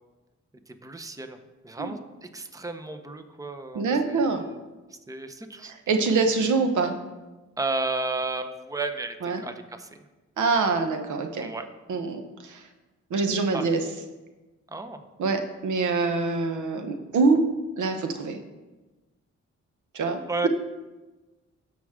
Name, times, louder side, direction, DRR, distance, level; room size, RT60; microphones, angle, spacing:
voice 1, 0.7-1.4 1.6-4.6 5.1-5.8 7.6-10.0 11.3-11.7 13.5-13.7 14.7-15.0 20.3-20.5, right 3 dB, 10° right, 8 dB, 0.7 m, -33 dB
voice 2, 3.7-4.4 5.6-7.0 9.2-9.4 10.4-11.5 11.9-12.6 13.1-13.8 15.2-17.4 17.8-18.4 19.9-20.5, right 4 dB, 85° right, 6 dB, 1.0 m, -25 dB
15.5 x 6.2 x 3.7 m, 1.2 s
cardioid pair, 95°, 29 cm